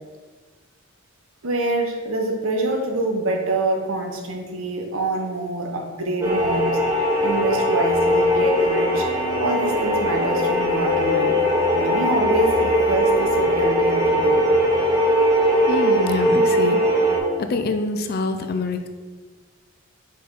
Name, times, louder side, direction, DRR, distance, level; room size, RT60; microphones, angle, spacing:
voice 1, 1.4-6.8 7.2-9.1 9.4-14.4, right 2 dB, 70° right, 2 dB, 1.0 m, -26 dB
sound 1, 6.2-17.2, equal, 15° right, 0.8 m, -20 dB
voice 2, 15.7-16.8 17.4-18.9, left 3 dB, 45° left, 7 dB, 0.5 m, -25 dB
5.0 x 4.6 x 4.7 m, 1.4 s
head